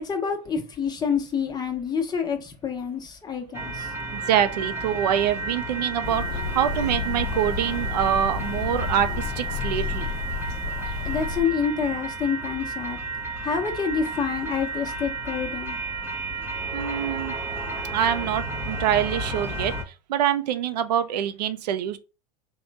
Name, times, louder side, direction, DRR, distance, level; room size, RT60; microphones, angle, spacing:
voice 1, 0.0-3.9 11.0-13.0 13.4-15.8, left 6 dB, 20° left, 0.9 m, -27 dB
sound 1, 3.5-19.8, right 3 dB, 10° right, 0.8 m, -32 dB
voice 2, 4.1-10.1 16.7-17.4 17.9-19.7 20.1-22.0, right 10 dB, 85° right, 0.6 m, -25 dB
sound 2, 6.0-11.4, left 5 dB, 50° left, 0.6 m, -31 dB
3.6 x 2.2 x 4.0 m
supercardioid pair, 115°, 20 cm